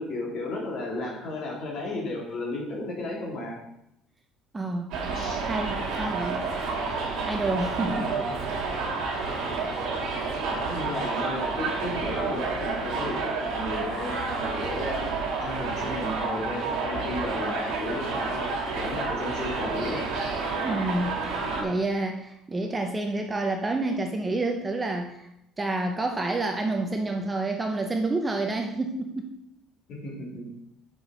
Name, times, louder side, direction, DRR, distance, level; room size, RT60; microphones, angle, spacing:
voice 1, 0.0-3.6 5.1-5.4 6.0-6.1 7.9-8.4 10.5-15.1 15.4-20.1 29.9-30.5, left 2 dB, 45° left, -3 dB, 2.8 m, -34 dB
voice 2, 4.5-4.9 5.4-6.5 7.2-8.1 9.1-9.6 20.6-21.2 21.6-25.3 25.6-29.3, right 2 dB, 15° right, 3 dB, 0.6 m, -29 dB
Subway metro underground, 4.9-21.6, right 4 dB, 60° right, 2.8 m, -30 dB
6.0 x 6.0 x 6.2 m, 0.80 s
cardioid pair, 170°, 0 cm